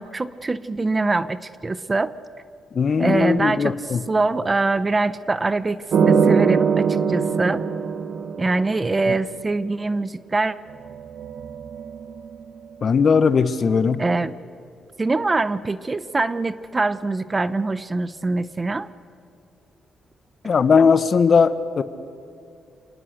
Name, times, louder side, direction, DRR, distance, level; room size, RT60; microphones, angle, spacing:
voice 1, 0.0-2.1 3.0-3.7 4.1-7.7 8.4-10.6 14.0-14.4 15.0-18.9, right 3 dB, 25° right, 16 dB, 0.8 m, -23 dB
voice 2, 2.7-4.0 12.8-14.0 20.4-21.8, left 5 dB, 45° left, 14 dB, 1.1 m, -18 dB
sound 1, 5.9-9.0 10.7-12.4, right 6 dB, 65° right, 1.5 m, -22 dB
28.0 x 18.5 x 6.6 m, 2.6 s
cardioid pair, 100°, 0 cm